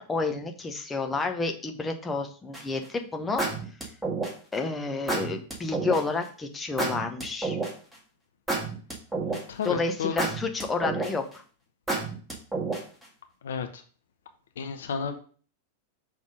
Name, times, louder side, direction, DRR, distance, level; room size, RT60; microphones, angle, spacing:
voice 1, 0.0-3.4 4.5-7.6 9.6-11.4, left 4 dB, 15° left, 4 dB, 0.9 m, -30 dB
sound 1, 2.5-2.8 3.4-4.5 5.1-6.0 6.8-7.9 8.5-9.6 10.2-11.3 11.9-13.0, right 3 dB, 5° right, 1.8 m, -29 dB
voice 2, 9.5-10.2 13.4-13.8 14.6-15.2, left 6 dB, 65° left, 7 dB, 0.7 m, -32 dB
6.2 x 3.5 x 5.1 m, 0.41 s
figure-of-eight pair, 90°, 0 cm